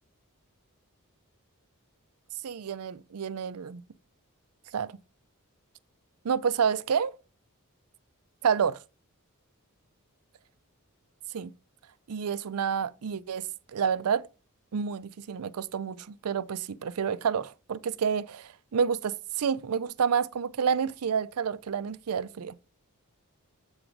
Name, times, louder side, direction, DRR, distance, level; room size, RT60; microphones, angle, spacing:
voice 1, 2.4-3.8 4.7-4.9 6.2-7.1 8.4-8.8 11.3-11.5 12.1-14.3 14.7-22.5, right 6 dB, 80° right, 0.5 m, -29 dB
7.9 x 3.9 x 4.5 m
head